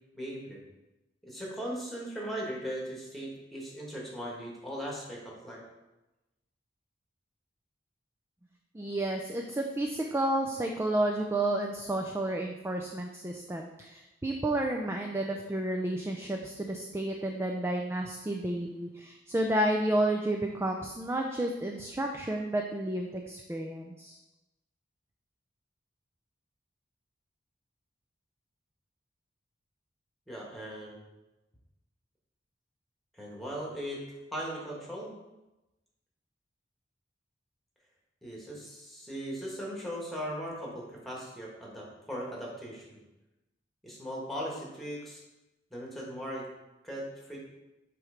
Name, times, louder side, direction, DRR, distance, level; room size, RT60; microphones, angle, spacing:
voice 1, 0.1-0.6 1.2-5.6 30.3-31.0 33.1-34.0 34.3-35.1 38.2-42.9 43.8-45.2 45.7-46.5 46.8-47.4, equal, ahead, -4 dB, 1.6 m, -38 dB
voice 2, 8.7-24.2, right 1 dB, 15° right, 2 dB, 0.4 m, -31 dB
7.6 x 3.2 x 5.0 m, 1.0 s
head